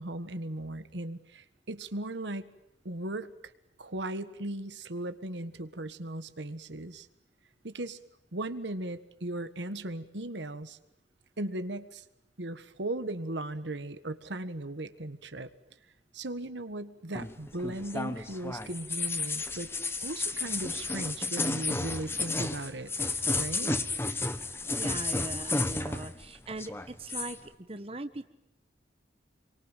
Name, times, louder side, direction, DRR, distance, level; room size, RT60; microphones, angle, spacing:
voice 1, 0.0-2.5 2.8-3.3 3.8-7.1 7.6-8.0 8.3-10.8 11.4-12.0 12.4-15.5 16.1-19.7 20.0-22.9 23.4-23.7, right 1 dB, 80° right, 11 dB, 1.6 m, -37 dB
sound 1, 17.1-26.2 26.5-27.4, left 3 dB, 15° left, 1.3 m, -32 dB
voice 2, 24.8-28.3, right 2 dB, 30° right, 10 dB, 1.3 m, -40 dB
27.5 x 24.0 x 9.1 m, 0.83 s
head